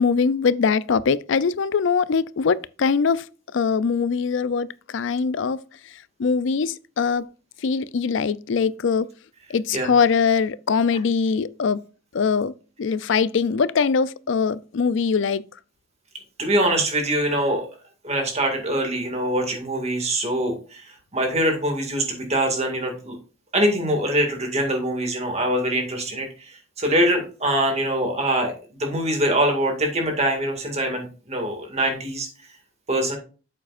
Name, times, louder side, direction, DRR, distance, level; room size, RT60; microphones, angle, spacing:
voice 1, 0.0-3.3 3.5-5.6 5.8-7.3 7.6-9.1 9.5-11.8 12.1-12.5 12.8-15.4, left 5 dB, 65° left, 0.4 m, -22 dB
voice 2, 16.4-17.7 18.0-23.2 23.5-28.5 28.8-32.3 32.9-33.2, right 1 dB, 30° right, 2.0 m, -23 dB
9.0 x 7.6 x 2.5 m
head